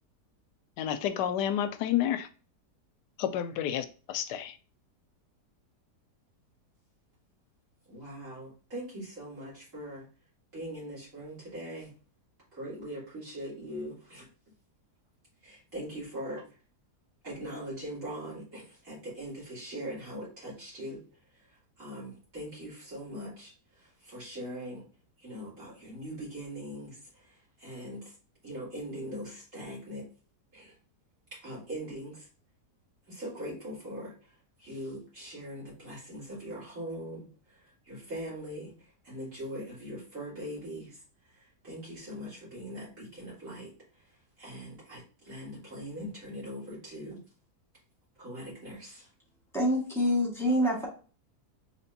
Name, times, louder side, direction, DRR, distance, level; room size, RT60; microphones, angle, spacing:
voice 1, 0.8-2.3 3.2-4.5, left 10 dB, 85° left, 1.2 m, -30 dB
voice 2, 7.9-10.0 10.5-11.9 12.5-14.3 15.4-16.5 17.2-21.0 21.3-24.8 25.2-28.1 28.4-30.1 30.5-30.7 31.3-32.3 33.1-44.1 44.4-47.2 48.2-49.1, equal, 50° right, 3.0 m, -41 dB
voice 3, 49.5-50.9, equal, ahead, 1.5 m, -26 dB
5.1 x 3.4 x 2.7 m
omnidirectional pair, 1.8 m